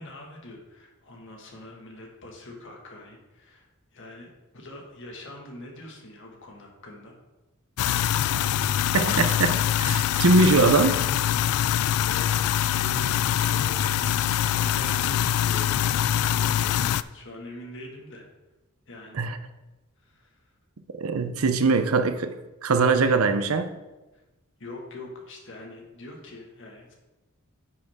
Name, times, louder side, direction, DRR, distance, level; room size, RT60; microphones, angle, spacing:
voice 1, 0.0-7.2 12.0-13.2 13.4-18.3 18.9-19.2 20.0-20.5 24.1-24.2 24.6-26.9, left 1 dB, 60° left, 1.8 m, -43 dB
sound 1, 7.8-17.0, left 10 dB, 85° left, 0.3 m, -24 dB
voice 2, 8.9-11.0 19.1-19.4 21.0-22.4 22.6-23.7, right 3 dB, 75° right, 0.7 m, -22 dB
10.0 x 6.2 x 3.6 m
head